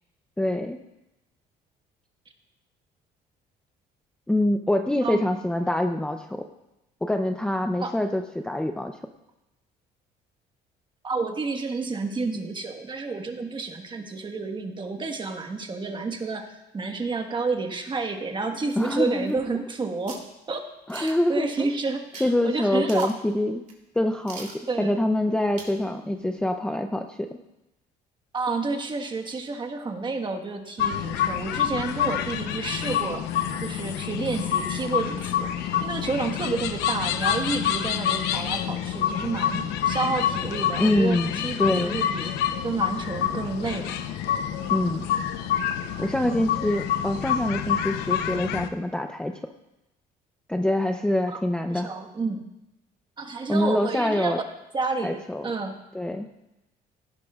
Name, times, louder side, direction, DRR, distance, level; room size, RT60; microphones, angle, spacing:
voice 1, 0.4-0.8 4.3-6.4 7.0-9.0 18.8-19.4 20.9-21.7 22.2-23.6 24.0-27.4 40.8-42.0 44.7-45.0 46.0-49.4 50.5-51.9 53.5-54.4 55.0-55.5 55.9-56.3, left 1 dB, 5° left, 5 dB, 0.6 m, -25 dB
voice 2, 11.0-20.6 20.9-23.1 24.7-25.0 28.3-33.3 33.6-42.3 42.6-44.0 51.3-51.4 51.7-52.4 53.2-54.3 54.7-55.7, right 3 dB, 30° right, 5 dB, 1.4 m, -30 dB
sound 1, 18.7-19.7 20.1-20.3 20.9-21.3 22.1-22.3 22.6-22.7 22.9-23.3 23.7-23.8 24.3-24.6 25.6-25.8 26.2-26.3, right 4 dB, 45° right, 2.9 m, -43 dB
sound 2, 30.8-48.7, left 9 dB, 90° left, 0.8 m, -27 dB
17.0 x 11.5 x 2.4 m, 0.94 s
cardioid pair, 110°, 17 cm